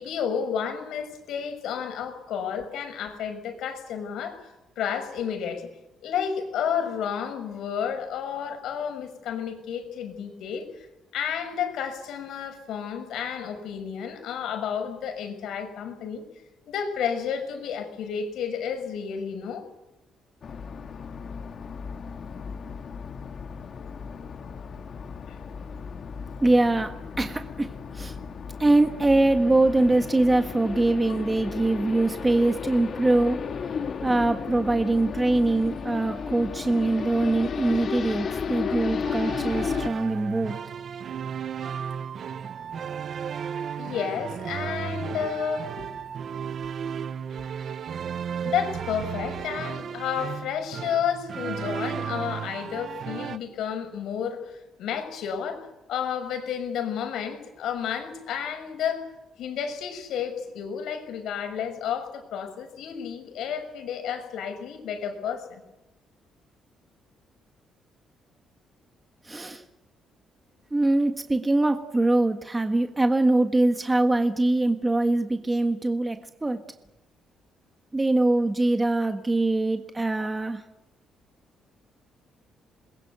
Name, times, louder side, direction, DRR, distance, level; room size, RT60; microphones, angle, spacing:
voice 1, 0.0-5.7 6.0-10.7 11.1-16.2 16.7-19.7 25.3-25.4 40.1-40.2 43.8-45.9 48.4-59.1 59.4-65.6, left 8 dB, 80° left, 7 dB, 6.0 m, -31 dB
sound 1, 20.4-39.9, left 6 dB, 50° left, 1.7 m, -34 dB
voice 2, 26.4-28.2 28.6-33.4 34.0-40.6 69.2-69.6 70.7-76.6 77.9-80.6, right 2 dB, 15° right, 6 dB, 1.6 m, -23 dB
sound 2, 39.0-53.4, right 7 dB, 55° right, 0.9 m, -34 dB
27.5 x 21.5 x 8.2 m, 0.97 s
cardioid pair, 115°, 0 cm